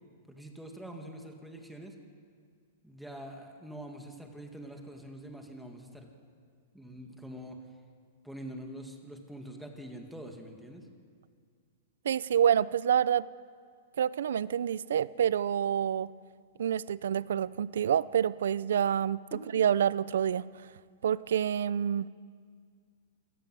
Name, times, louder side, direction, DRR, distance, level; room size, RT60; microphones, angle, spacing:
voice 1, 0.3-2.0 2.8-6.1 6.7-7.6 8.2-10.9 19.3-19.5, right 1 dB, ahead, 2 dB, 2.2 m, -45 dB
voice 2, 12.0-13.3 14.0-16.1 16.6-19.2 19.5-20.4 21.0-22.1, right 9 dB, 80° right, 19 dB, 0.6 m, -27 dB
27.0 x 18.0 x 7.8 m, 2.1 s
hypercardioid pair, 160°, 0 cm